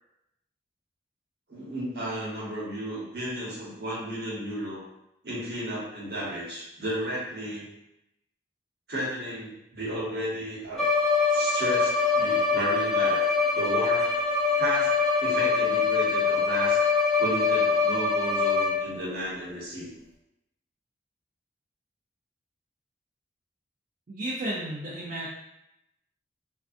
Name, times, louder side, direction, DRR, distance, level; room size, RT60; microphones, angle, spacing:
voice 1, 1.5-4.8 5.2-7.7 8.9-10.8 11.3-13.2 13.5-14.1 14.6-14.9 15.2-16.8 17.2-19.9, right 1 dB, 60° right, -7 dB, 1.0 m, -33 dB
Bowed string instrument, 10.7-19.0, left 4 dB, ahead, 0.7 m, -24 dB
voice 2, 24.1-25.3, right 1 dB, 45° right, -6 dB, 0.4 m, -33 dB
2.5 x 2.3 x 2.4 m, 0.85 s
head